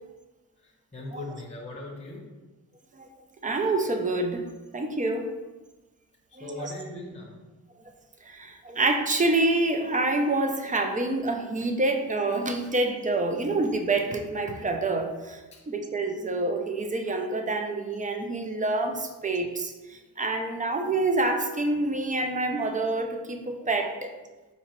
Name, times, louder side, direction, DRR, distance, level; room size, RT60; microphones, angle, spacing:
voice 1, 0.6-2.2 6.4-7.4 15.5-15.6, left 2 dB, 20° left, -2 dB, 0.7 m, -39 dB
voice 2, 3.4-4.5 4.7-5.3 6.4-6.7 8.3-15.4 15.7-24.1, right 2 dB, 20° right, 4 dB, 0.3 m, -27 dB
4.4 x 2.8 x 3.0 m, 1.2 s
wide cardioid pair, 110°, 38 cm